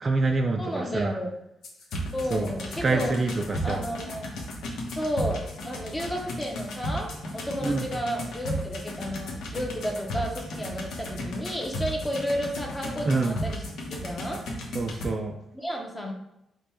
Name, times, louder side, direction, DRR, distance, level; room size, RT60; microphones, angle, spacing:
voice 1, 0.0-1.2 2.3-2.5 2.8-3.8 7.6-7.8 13.1-13.4 14.7-15.4, right 3 dB, 30° right, 3 dB, 0.3 m, -26 dB
voice 2, 0.6-1.4 2.1-3.1 3.6-4.3 5.0-13.6 13.9-14.4 15.5-16.1, equal, 10° left, 1 dB, 0.7 m, -32 dB
sound 1, 1.6-15.1, equal, 70° left, 1.0 m, -35 dB
5.2 x 2.3 x 4.3 m, 0.84 s
cardioid pair, 155°, 0 cm